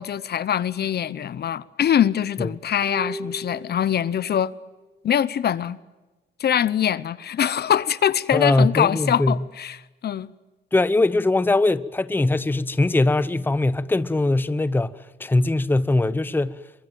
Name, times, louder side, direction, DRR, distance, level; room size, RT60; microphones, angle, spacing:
voice 1, 0.0-4.5 5.0-5.8 6.4-10.3, left 9 dB, 55° left, 0.8 m, -23 dB
sound 1, 2.8-4.5 4.7-4.8, right 2 dB, 25° right, 2.1 m, -36 dB
voice 2, 8.3-9.4 10.7-16.6, left 2 dB, 10° left, 0.8 m, -21 dB
23.0 x 23.0 x 9.2 m
cardioid pair, 90°, 20 cm